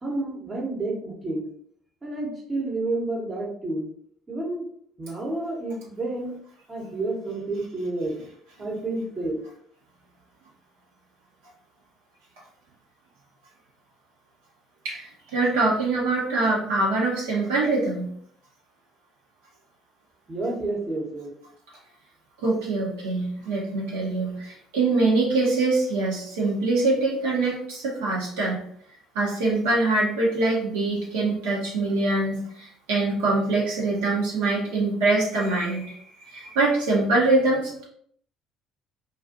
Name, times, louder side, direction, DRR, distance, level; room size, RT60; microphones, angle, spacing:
voice 1, 0.0-1.5 2.0-3.9 4.3-4.7 5.0-6.3 6.7-8.2 8.6-9.4 20.3-21.3, right 2 dB, 30° right, -2 dB, 0.9 m, -30 dB
voice 2, 14.8-18.1 22.4-28.6 29.1-37.8, right 2 dB, 75° right, -4 dB, 0.7 m, -24 dB
2.4 x 2.3 x 2.5 m, 0.62 s
hypercardioid pair, 60°, 0 cm